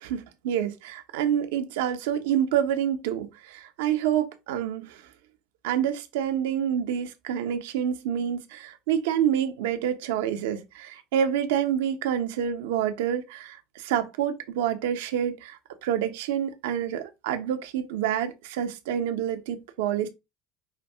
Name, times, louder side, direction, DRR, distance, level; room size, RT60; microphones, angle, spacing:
voice 1, 0.0-5.0 5.6-20.1, right 9 dB, 75° right, 0.8 m, -27 dB
5.7 x 2.6 x 3.5 m
hypercardioid pair, 80°, 0 cm